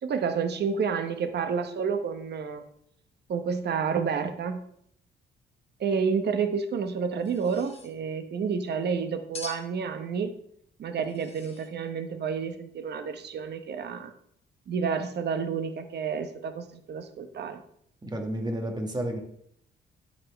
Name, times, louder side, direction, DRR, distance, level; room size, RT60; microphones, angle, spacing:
voice 1, 0.0-2.6 3.3-4.7 5.8-10.3 10.8-14.1 14.7-17.6, right 6 dB, 55° right, 8 dB, 0.9 m, -30 dB
sound 1, 7.2-7.9 9.3-9.7 11.0-11.7, left 2 dB, 30° left, 1.3 m, -43 dB
voice 2, 18.0-19.2, right 1 dB, 20° right, 3 dB, 1.5 m, -31 dB
12.0 x 4.3 x 3.4 m, 0.69 s
cardioid pair, 90°, 20 cm